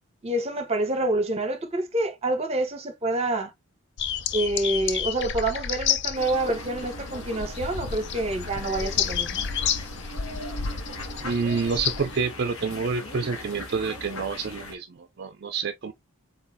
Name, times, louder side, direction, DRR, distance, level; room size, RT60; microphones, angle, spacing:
voice 1, 0.2-3.5 4.3-9.5, right 2 dB, 25° right, 0.9 m, -27 dB
sound 1, 4.0-12.2, left 8 dB, 50° left, 0.5 m, -30 dB
sound 2, 6.1-14.7, left 1 dB, 70° left, 1.6 m, -39 dB
voice 2, 11.2-15.9, right 5 dB, 45° right, 0.4 m, -28 dB
4.0 x 3.9 x 2.7 m
head